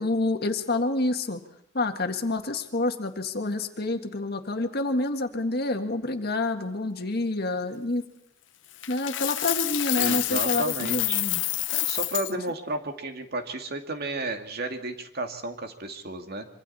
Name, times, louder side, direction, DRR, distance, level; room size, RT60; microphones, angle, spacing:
voice 1, 0.0-1.4 1.7-8.0 8.9-11.4, left 2 dB, 55° left, 6 dB, 1.8 m, -28 dB
Coin (dropping), 8.8-12.3, left 15 dB, 75° left, 0.8 m, -28 dB
voice 2, 10.0-11.2 11.7-16.5, right 2 dB, 55° right, 5 dB, 2.3 m, -33 dB
25.0 x 25.0 x 4.3 m, 0.79 s
head